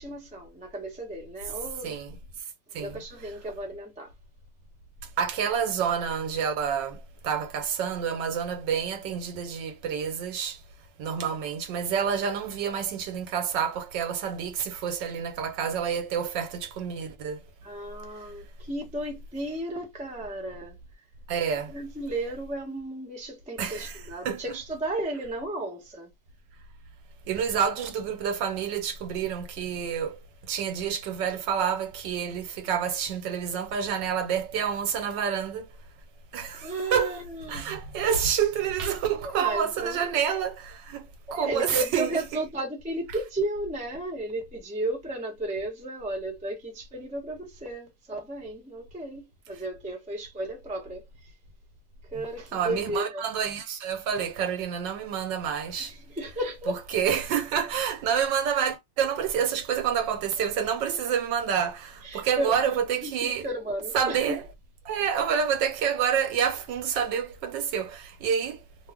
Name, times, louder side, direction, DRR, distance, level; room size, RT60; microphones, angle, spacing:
voice 1, 0.0-2.0 2.8-4.1 17.6-20.8 21.7-26.1 36.6-37.7 39.2-40.1 41.3-51.0 52.1-53.2 56.1-56.8 62.0-64.2 65.1-65.3, right 1 dB, 10° right, 0.5 m, -34 dB
voice 2, 5.2-10.6 11.0-17.4 21.3-21.7 23.6-24.0 24.2-24.4 27.3-30.2 30.5-35.7 36.3-37.2 37.5-41.1 41.3-42.4 52.5-56.0 56.7-63.5 63.9-64.4 64.8-68.6, right 7 dB, 75° right, 1.4 m, -28 dB
3.0 x 2.1 x 3.4 m
omnidirectional pair, 2.0 m